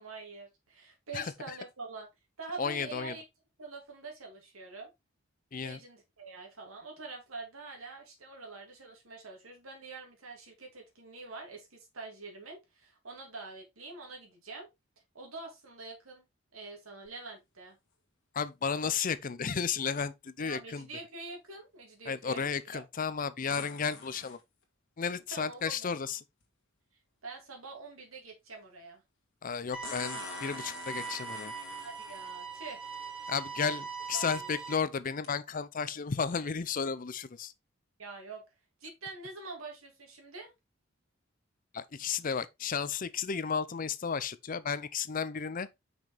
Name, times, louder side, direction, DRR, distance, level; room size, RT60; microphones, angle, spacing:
voice 1, 0.0-2.1 2.4-3.2 3.6-4.9 5.6-14.7 15.1-16.2 16.5-17.8 20.4-22.8 25.3-25.9 27.2-29.0 31.8-32.8 34.1-34.5 38.0-38.4 38.8-40.5, right 3 dB, 90° right, 2.4 m, -45 dB
voice 2, 2.6-3.1 5.5-5.8 18.3-20.9 22.1-24.4 25.0-26.2 29.4-31.5 33.3-37.5 41.7-45.7, left 6 dB, 40° left, 0.5 m, -33 dB
sound 1, 17.1-17.2 23.5-24.4 26.4-26.5 29.8-32.3 33.3-33.4 34.0-34.3 35.2-35.3, left 4 dB, 60° left, 2.0 m, -45 dB
sound 2, 29.7-34.7, right 5 dB, 5° right, 1.2 m, -41 dB
6.0 x 5.3 x 3.3 m
head